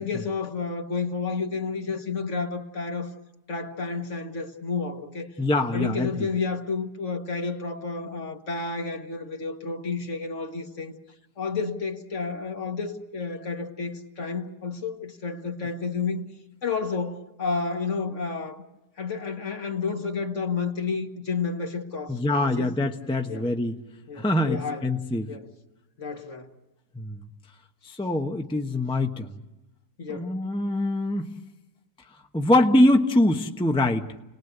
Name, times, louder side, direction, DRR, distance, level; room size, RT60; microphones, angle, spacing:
voice 1, 0.0-3.1 3.5-5.3 5.7-11.0 11.4-16.2 16.6-18.6 19.0-22.7 23.3-23.5 24.1-24.9 25.3-25.5 26.0-26.5 30.0-30.3, left 4 dB, 50° left, 1.9 m, -31 dB
voice 2, 5.4-6.3 22.1-23.7 24.2-25.3 26.9-27.2 27.8-29.3 30.1-31.3 32.3-34.1, left 1 dB, 5° left, 0.9 m, -23 dB
29.5 x 19.5 x 8.0 m
omnidirectional pair, 1.7 m